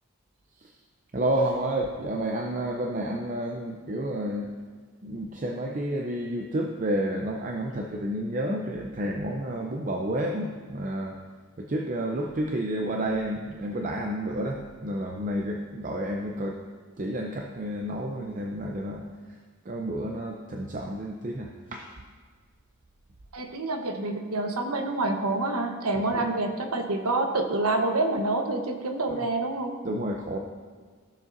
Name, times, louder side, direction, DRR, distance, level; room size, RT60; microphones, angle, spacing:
voice 1, 1.1-4.5 5.0-11.2 11.6-16.6 17.0-19.1 19.7-21.9 26.1-26.2 29.8-30.4, right 1 dB, 35° right, 1 dB, 0.5 m, -30 dB
voice 2, 23.3-29.8, right 2 dB, 90° right, 5 dB, 1.0 m, -27 dB
14.5 x 6.7 x 2.6 m, 1.5 s
head